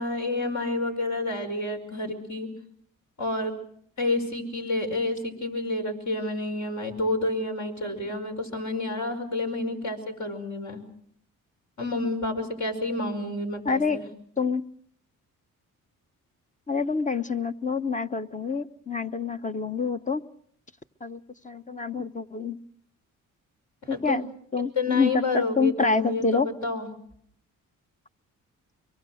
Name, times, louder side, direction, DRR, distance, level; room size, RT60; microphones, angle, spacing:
voice 1, 0.0-2.5 3.2-3.5 4.0-10.8 11.8-14.0 23.8-24.2 24.8-26.9, left 2 dB, 60° left, 4 dB, 5.4 m, -29 dB
voice 2, 13.6-14.0 14.4-14.6 16.7-20.2 21.0-22.6 23.9-26.5, left 4 dB, 20° left, 11 dB, 0.9 m, -27 dB
24.0 x 23.0 x 6.4 m, 0.65 s
cardioid pair, 70°, 33 cm